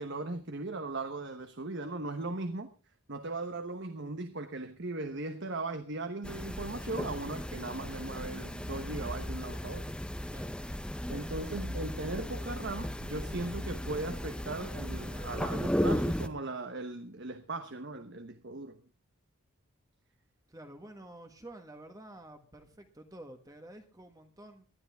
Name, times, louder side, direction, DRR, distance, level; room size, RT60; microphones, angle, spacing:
voice 1, 0.0-2.7 3.1-9.9 11.1-18.8, right 2 dB, 50° right, 1.1 m, -38 dB
sound 1, 6.2-16.3, equal, 5° left, 0.7 m, -35 dB
voice 2, 10.3-10.6 14.9-15.8 20.5-24.7, right 1 dB, 15° right, 1.5 m, -50 dB
20.0 x 12.5 x 3.5 m
head